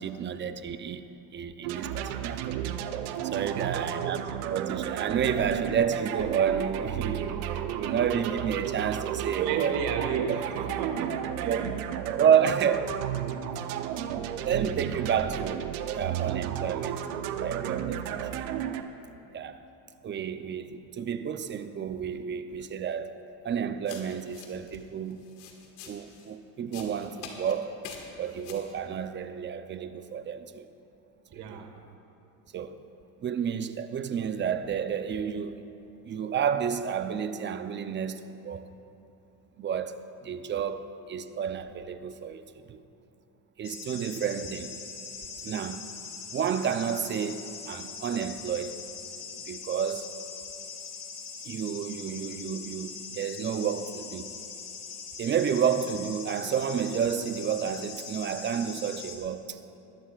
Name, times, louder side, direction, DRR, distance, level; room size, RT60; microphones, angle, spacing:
voice 1, 0.0-2.7 3.3-9.8 10.3-10.4 11.4-11.7 12.2-12.9 14.4-15.6 15.9-17.0 17.4-18.5 19.3-19.6 20.0-23.2 23.4-25.2 25.9-27.7 28.2-30.7 31.3-31.6 32.5-32.8 33.2-35.7 36.1-38.7 39.6-42.4 42.7-42.8 43.6-44.8 45.4-45.9 46.3-48.8 49.5-50.2 51.4-54.4 55.2-59.8, right 8 dB, 25° right, 0.6 m, -30 dB
sound 1, 1.6-18.8, right 10 dB, 80° right, 0.9 m, -33 dB
voice 2, 3.5-3.9 9.2-11.8 31.3-31.8, right 7 dB, 65° right, 1.7 m, -34 dB
sound 2, 23.9-24.8 25.1-26.3 26.7-27.6 27.8-28.7, left 7 dB, 85° left, 2.0 m, -45 dB
sound 3, 43.6-59.2, left 5 dB, 45° left, 2.7 m, -42 dB
21.0 x 13.5 x 2.4 m
supercardioid pair, 110°, 43 cm